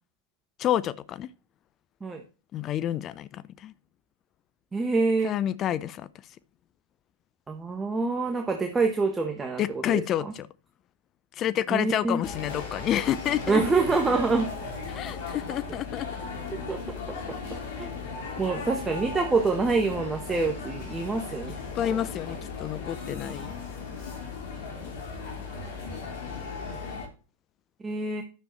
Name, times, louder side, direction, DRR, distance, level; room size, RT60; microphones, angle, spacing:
voice 1, 0.6-1.3 2.5-3.7 5.2-6.1 9.6-10.5 11.3-13.6 14.9-16.1 21.7-23.5, left 11 dB, 30° left, 0.5 m, -29 dB
voice 2, 4.7-5.3 7.5-10.0 11.7-12.2 13.5-14.5 16.7-17.4 17.8-17.9 18.4-21.5 21.9-22.0 24.7-24.9 27.8-28.2, right 3 dB, 15° right, 1.4 m, -26 dB
sound 1, 12.2-27.1, left 4 dB, 50° left, 3.7 m, -37 dB
10.5 x 7.1 x 4.2 m
figure-of-eight pair, 90°, 0 cm